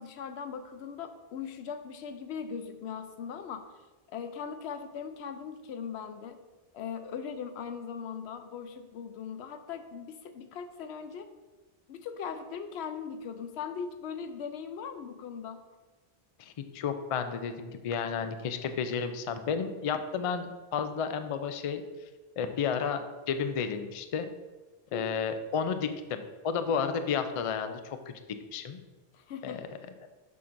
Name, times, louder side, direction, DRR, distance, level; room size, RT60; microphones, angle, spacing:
voice 1, 0.0-3.7 4.1-6.4 6.7-11.3 11.9-15.6 24.9-25.2 29.1-29.6, left 6 dB, 85° left, 9 dB, 0.8 m, -39 dB
voice 2, 16.4-21.8 22.4-24.3 24.9-28.0 28.5-28.8 29.4-29.7, left 6 dB, 55° left, 9 dB, 0.3 m, -32 dB
7.3 x 5.8 x 2.6 m, 1.3 s
omnidirectional pair, 1.1 m